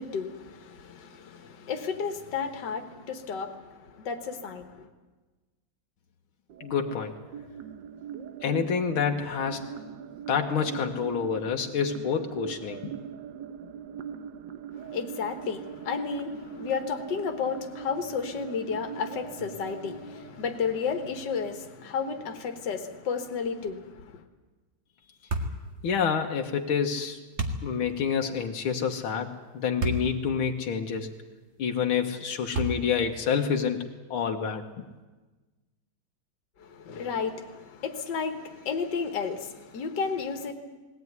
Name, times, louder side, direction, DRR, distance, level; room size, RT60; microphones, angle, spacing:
voice 1, 0.0-4.9 14.8-24.2 36.6-40.5, left 6 dB, 60° left, 2.1 m, -32 dB
sound 1, 6.5-21.5, right 8 dB, 65° right, 1.4 m, -41 dB
voice 2, 6.6-7.1 8.4-9.7 10.3-12.9 25.8-27.2 27.6-31.1 31.6-34.8, left 6 dB, 80° left, 2.0 m, -28 dB
sound 2, 25.3-25.6 27.4-27.7 29.8-30.1 30.7-30.8 32.5-33.0, right 2 dB, 35° right, 1.8 m, -29 dB
20.0 x 17.0 x 9.5 m
omnidirectional pair, 2.3 m